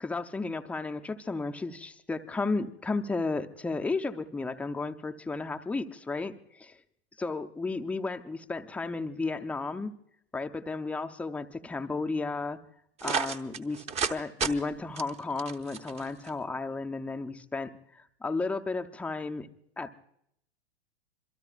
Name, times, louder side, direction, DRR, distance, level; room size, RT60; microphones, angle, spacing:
voice 1, 0.0-6.8 7.2-9.9 10.3-12.6 13.0-17.7 18.2-19.5 19.8-20.0, left 3 dB, 5° left, 6 dB, 0.5 m, -33 dB
sound 1, 13.0-14.1 14.4-14.5 15.0-16.3, right 6 dB, 20° right, 0.8 m, -31 dB
27.0 x 22.5 x 2.4 m, 0.74 s
hypercardioid pair, 120°, 34 cm